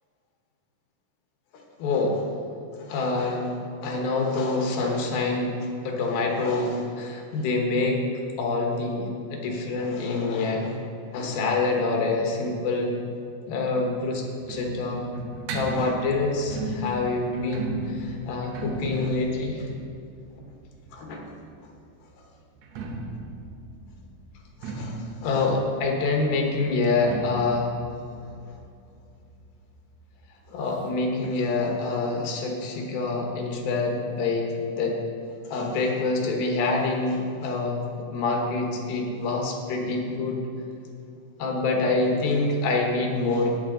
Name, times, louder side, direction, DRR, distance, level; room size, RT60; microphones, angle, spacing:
voice 1, 1.8-2.3 2.8-8.1 8.4-10.8 11.1-13.0 13.5-15.1 15.5-19.7 20.9-21.3 24.6-27.7 30.5-35.0 35.4-37.8 38.1-40.4 41.4-43.6, left 3 dB, 70° left, 1 dB, 3.0 m, -26 dB
sound 1, 13.7-21.4 22.5-29.9 30.1-30.2 30.5-30.6 31.2-31.3, right 1 dB, 80° right, 1.6 m, -36 dB
17.0 x 6.8 x 3.8 m, 2.5 s
omnidirectional pair, 4.5 m